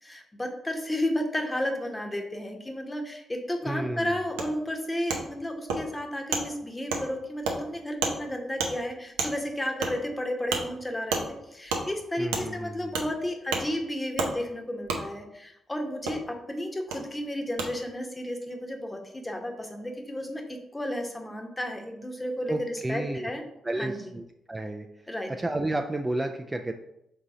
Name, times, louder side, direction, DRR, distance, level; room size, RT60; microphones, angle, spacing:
voice 1, 0.0-23.4 23.8-24.0 25.1-25.3, left 1 dB, 20° left, 3 dB, 1.0 m, -32 dB
voice 2, 3.6-4.2 12.2-12.9 22.5-23.3 23.6-24.9 25.4-26.7, right 2 dB, 20° right, 5 dB, 0.4 m, -31 dB
Wood, 4.4-4.5 5.1-5.2 5.7-5.8 6.3-6.4 6.9-7.0 7.4-7.6 8.0-8.2 8.6-8.7 9.2-9.3 9.8-9.9 10.5-10.6 11.1-11.2 11.7-11.8 12.3-12.4 12.9-13.1 13.5-13.6 14.2-14.3 14.9-15.0 16.0-16.2 16.9-17.0 17.6-17.7, right 4 dB, 80° right, 0.5 m, -28 dB
3.7 x 2.8 x 4.7 m, 0.81 s
hypercardioid pair, 40°, 0 cm